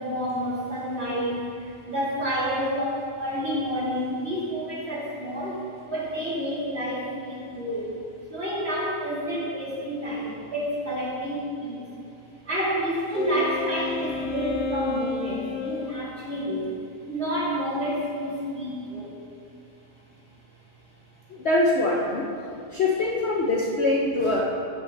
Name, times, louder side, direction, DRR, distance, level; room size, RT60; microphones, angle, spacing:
voice 1, 0.0-8.0 8.3-11.9 12.4-16.7 17.1-19.1, equal, 40° right, -8 dB, 3.1 m, -29 dB
Wind instrument woodwind instrument, 13.1-16.0, left 5 dB, 80° left, 1.5 m, -31 dB
voice 2, 21.3-22.3 22.7-24.4, left 2 dB, 50° left, -3 dB, 1.0 m, -23 dB
15.0 x 6.3 x 4.0 m, 2.6 s
omnidirectional pair, 1.8 m